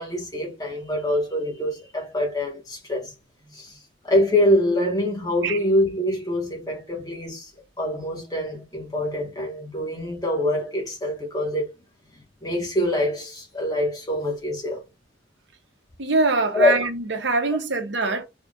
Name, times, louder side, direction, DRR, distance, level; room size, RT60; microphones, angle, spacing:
voice 1, 0.0-3.1 3.5-3.8 4.0-7.5 7.8-11.7 12.4-14.8 16.5-16.8, left 1 dB, 20° left, 1.2 m, -24 dB
voice 2, 16.0-18.2, right 3 dB, 75° right, 0.9 m, -23 dB
3.6 x 2.5 x 3.6 m
head